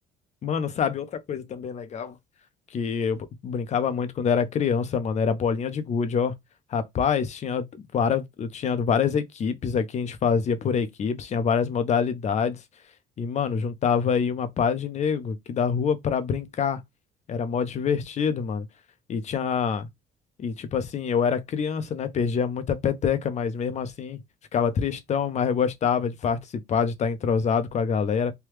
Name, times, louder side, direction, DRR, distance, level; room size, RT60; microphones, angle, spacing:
voice 1, 0.4-2.2 2.7-6.3 6.7-12.6 13.2-16.8 17.3-18.7 19.1-19.9 20.4-24.2 24.5-28.3, left 6 dB, 45° left, 0.6 m, -26 dB
3.3 x 2.3 x 3.1 m
cardioid pair, 110°, 17 cm